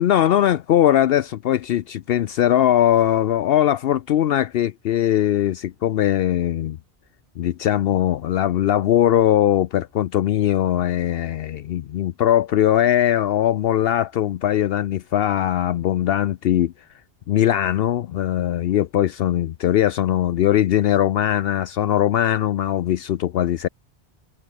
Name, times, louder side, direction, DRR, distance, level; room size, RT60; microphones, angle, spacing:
voice 1, 0.0-6.8 7.4-16.7 17.3-23.7, left 11 dB, 70° left, 0.8 m, -20 dB
omnidirectional pair, 1.0 m